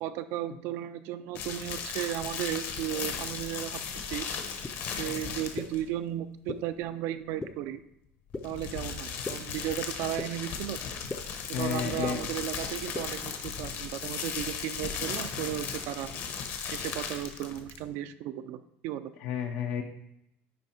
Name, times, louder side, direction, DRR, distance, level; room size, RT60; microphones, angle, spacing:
voice 1, 0.0-3.8 4.1-4.3 5.0-7.8 8.4-10.8 11.5-16.1 16.7-19.1, right 12 dB, 60° right, 10 dB, 0.4 m, -35 dB
sound 1, 1.3-5.8 8.3-17.9, left 6 dB, 50° left, 1.0 m, -37 dB
sound 2, 4.6-4.7 5.6-5.7 6.5-6.6 7.4-7.5 8.3-8.4 9.2-9.3 10.2-10.3 11.1-11.2 12.0-12.1 12.9-13.0, left 3 dB, 15° left, 0.5 m, -34 dB
voice 2, 11.5-12.2 19.2-19.8, left 9 dB, 80° left, 3 dB, 0.8 m, -31 dB
10.0 x 3.5 x 4.3 m, 0.81 s
cardioid pair, 160°, 5 cm